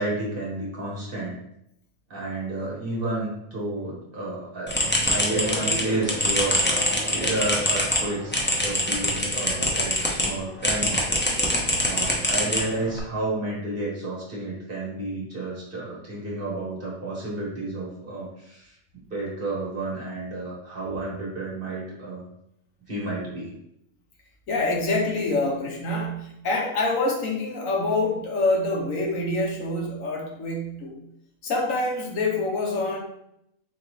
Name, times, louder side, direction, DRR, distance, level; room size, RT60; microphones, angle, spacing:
voice 1, 0.0-1.4 2.1-11.0 11.7-18.7 19.0-22.2 22.9-23.5, right 2 dB, 40° right, -5 dB, 1.5 m, -31 dB
sound 1, 4.7-10.3 10.6-13.0, left 1 dB, 15° left, 0.5 m, -24 dB
voice 2, 24.5-30.9 31.4-33.0, left 2 dB, 70° left, -1 dB, 1.3 m, -26 dB
4.2 x 3.8 x 3.1 m, 0.77 s
omnidirectional pair, 1.5 m